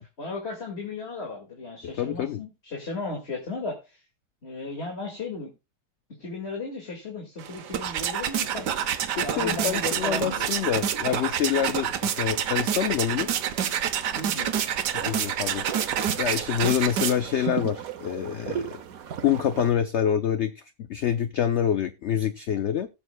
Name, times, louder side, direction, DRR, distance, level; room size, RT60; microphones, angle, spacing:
voice 1, 0.0-4.0 4.4-5.5 6.2-10.5 14.1-14.6, left 3 dB, 40° left, 1 dB, 2.2 m, -36 dB
voice 2, 2.0-2.4 9.2-13.3 14.9-15.8 16.2-18.7 19.2-22.9, left 9 dB, 65° left, 11 dB, 0.7 m, -26 dB
sound 1, 7.4-17.5, right 9 dB, 85° right, 1.5 m, -28 dB
sound 2, 8.4-19.7, right 8 dB, 65° right, 1.2 m, -39 dB
18.5 x 7.1 x 2.2 m, 0.26 s
omnidirectional pair, 1.8 m